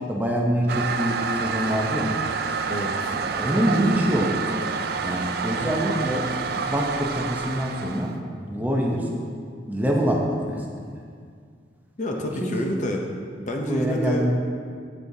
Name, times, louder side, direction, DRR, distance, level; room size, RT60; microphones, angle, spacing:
voice 1, 0.0-2.1 3.1-4.4 5.0-8.2 8.4-9.1 9.7-10.9 12.4-12.6 13.7-14.3, equal, 10° right, -1 dB, 0.7 m, -25 dB
Toilet flush, 0.7-8.2, right 5 dB, 55° right, 0.4 m, -28 dB
voice 2, 2.7-3.1 12.0-13.0 13.4-14.3, equal, 40° left, 1 dB, 0.6 m, -28 dB
8.5 x 8.3 x 2.7 m, 2.1 s
head